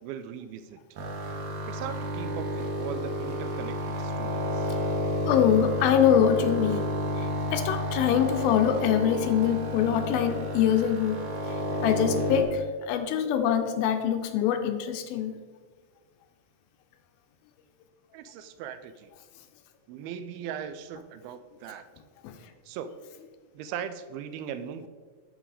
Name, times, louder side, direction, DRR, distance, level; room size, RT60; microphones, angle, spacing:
voice 1, 0.0-0.8 1.7-4.7 18.1-19.1 19.9-21.9 22.7-22.9 23.5-24.9, right 8 dB, 85° right, 11 dB, 2.4 m, -39 dB
sound 1, 1.0-12.4, equal, 65° right, 2.0 m, -31 dB
voice 2, 5.2-11.2 11.5-15.4 22.2-22.4, left 9 dB, 80° left, 8 dB, 2.4 m, -24 dB
11.0 x 4.5 x 4.1 m, 1.5 s
omnidirectional pair, 4.4 m